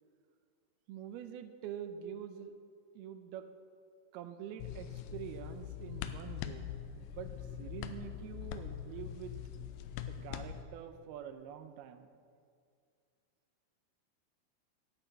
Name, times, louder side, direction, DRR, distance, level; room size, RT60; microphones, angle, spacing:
voice 1, 0.9-2.5 3.0-3.5 4.1-6.7 7.0-7.3 7.6-9.4 10.0-12.1, right 9 dB, 80° right, 9 dB, 2.7 m, -46 dB
sound 1, 4.6-10.6, left 10 dB, 80° left, 2.2 m, -43 dB
12.0 x 10.5 x 8.0 m, 2.3 s
omnidirectional pair, 4.5 m